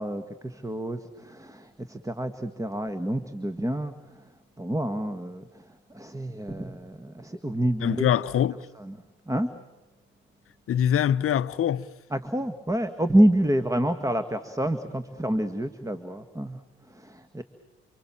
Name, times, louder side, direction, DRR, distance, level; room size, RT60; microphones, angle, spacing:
voice 1, 0.0-4.3 4.6-8.1 8.8-9.0 9.2-9.5 12.1-17.4, right 1 dB, 10° right, 1.6 m, -28 dB
voice 2, 7.8-8.6 10.7-11.9, left 10 dB, 45° left, 0.8 m, -23 dB
29.5 x 24.5 x 7.6 m
hypercardioid pair, 50°, 31 cm